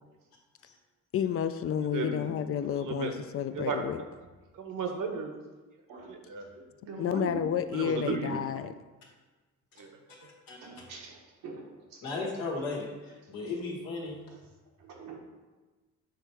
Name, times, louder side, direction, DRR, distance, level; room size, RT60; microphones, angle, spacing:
voice 1, 1.1-4.0 7.0-8.7, left 9 dB, 45° left, 10 dB, 0.4 m, -30 dB
voice 2, 1.9-2.3 2.8-3.1 3.5-3.8 4.6-5.3 6.1-6.6 7.7-8.4 9.8-9.9, right 4 dB, 65° right, 4 dB, 1.0 m, -34 dB
voice 3, 6.8-7.4 10.6-11.2 11.4-12.0 14.8-15.2, right 4 dB, 85° right, 0 dB, 1.2 m, -42 dB
voice 4, 10.2-10.8 12.0-14.2, left 3 dB, 90° left, -2 dB, 1.6 m, -36 dB
6.3 x 3.4 x 4.6 m, 1.3 s
supercardioid pair, 70°, 34 cm